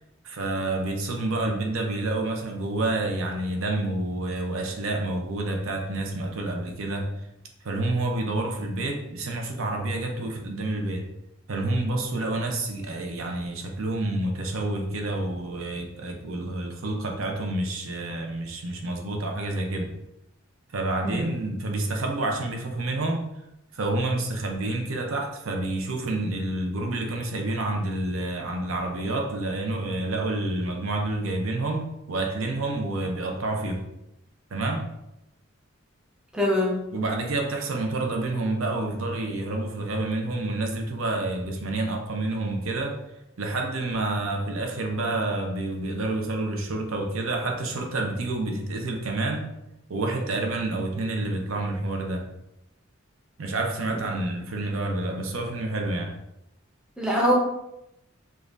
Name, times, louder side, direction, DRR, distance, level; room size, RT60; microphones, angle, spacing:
voice 1, 0.2-7.1 7.6-11.0 11.5-19.9 20.7-23.2 23.7-33.8 34.5-34.9 36.9-43.0 43.4-49.5 49.9-52.2 53.4-56.1, right 2 dB, 75° right, 2 dB, 0.6 m, -28 dB
voice 2, 21.0-21.4 36.3-36.8 57.0-57.3, equal, 5° right, -3 dB, 0.6 m, -23 dB
5.1 x 2.4 x 2.6 m, 0.86 s
head